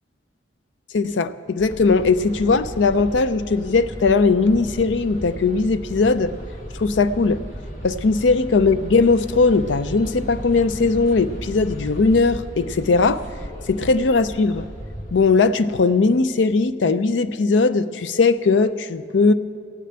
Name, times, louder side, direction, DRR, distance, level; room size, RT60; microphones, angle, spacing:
voice 1, 0.9-6.3 6.8-7.4 7.8-13.2 13.7-14.7 15.1-19.3, left 4 dB, 90° left, 13 dB, 0.5 m, -19 dB
sound 1, 1.6-15.2, equal, 40° left, 1.5 m, -35 dB
16.0 x 6.7 x 8.8 m, 2.4 s
head